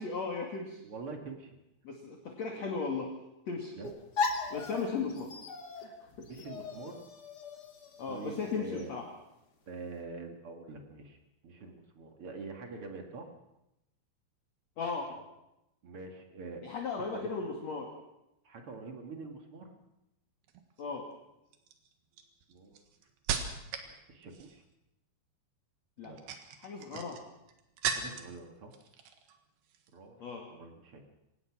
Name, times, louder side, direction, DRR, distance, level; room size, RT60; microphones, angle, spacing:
voice 1, 0.0-0.8 1.8-3.1 3.5-3.7 4.5-5.4 5.8-5.9 8.0-9.0 14.8-15.2 16.6-17.9 20.8-21.1 26.0-26.1 26.6-27.2 30.2-30.4, left 4 dB, 45° left, 1 dB, 2.6 m, -36 dB
voice 2, 0.8-1.6 3.8-3.9 6.2-7.0 8.1-8.9 9.7-11.2 11.4-13.3 15.8-16.6 17.0-17.2 18.4-19.7 22.5-22.9 23.3-23.6 23.8-24.6 26.0-26.2 26.9-27.0 27.9-28.7 29.9-30.2 30.5-31.0, right 3 dB, 45° right, 3 dB, 2.0 m, -45 dB
sound 1, 3.8-8.8, left 4 dB, 80° left, 0.9 m, -38 dB
sound 2, 20.4-20.8 21.5-23.9 24.2-24.7 26.0-28.4 28.7-29.4 29.6-29.9, right 7 dB, 65° right, 3.4 m, -38 dB
25.0 x 18.0 x 6.1 m, 0.88 s
omnidirectional pair, 5.3 m